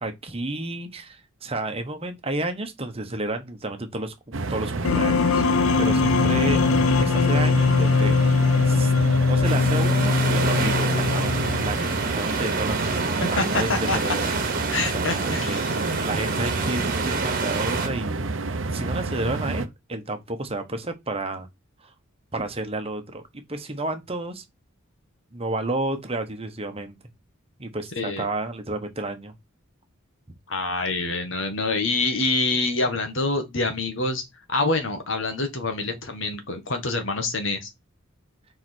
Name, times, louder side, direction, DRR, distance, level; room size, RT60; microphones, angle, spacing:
voice 1, 0.0-5.4 5.8-6.6 7.0-8.4 8.6-8.9 9.2-14.3 14.9-18.4 18.7-21.5 21.8-21.9 22.3-23.2 23.5-24.4 25.3-27.0 27.6-29.3, right 2 dB, 30° right, 1.2 m, -31 dB
sound 1, 4.3-19.7, right 3 dB, 65° right, 0.8 m, -30 dB
sound 2, 4.8-11.9, left 4 dB, 85° left, 0.4 m, -21 dB
sound 3, 9.4-17.9, right 4 dB, 45° right, 1.5 m, -28 dB
voice 2, 13.2-14.2 14.7-15.7 28.0-28.3 30.5-34.2 34.5-37.7, left 3 dB, 65° left, 1.7 m, -26 dB
4.8 x 4.8 x 6.2 m
head